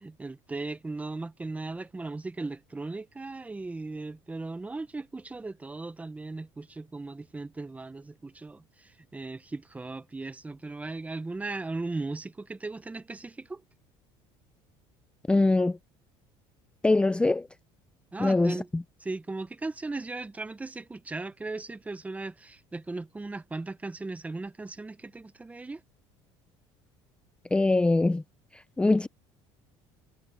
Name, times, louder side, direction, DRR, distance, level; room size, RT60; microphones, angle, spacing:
voice 1, 0.0-13.6 18.1-18.7 19.0-25.8, right 3 dB, 15° right, 0.9 m, -37 dB
voice 2, 15.3-15.8 16.8-17.5 18.2-18.8 27.5-28.2 28.5-29.1, left 2 dB, 10° left, 0.6 m, -23 dB
cardioid pair, 120°, 11 cm